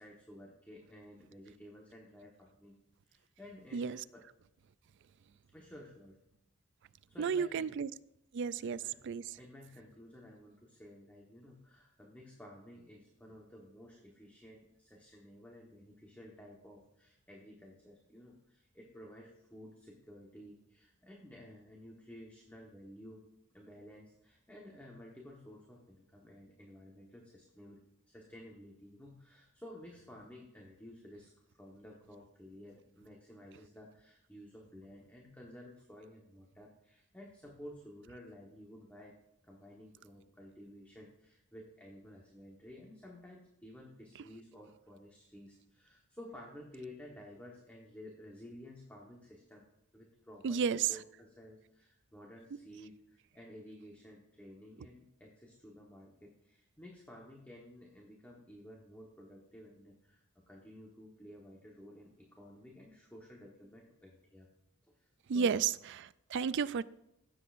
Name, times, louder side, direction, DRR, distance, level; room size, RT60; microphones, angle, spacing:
voice 1, 0.0-2.8 3.0-4.2 5.5-6.2 7.1-7.7 8.5-9.0 9.4-23.2 23.5-27.8 28.0-39.1 39.4-49.6 49.9-64.5 64.9-65.6, left 1 dB, 5° left, -2 dB, 1.2 m, -53 dB
voice 2, 7.2-7.9 8.3-9.2 50.4-50.9 65.3-65.7 66.0-66.8, right 6 dB, 55° right, 17 dB, 0.3 m, -32 dB
16.5 x 7.8 x 2.6 m, 0.84 s
head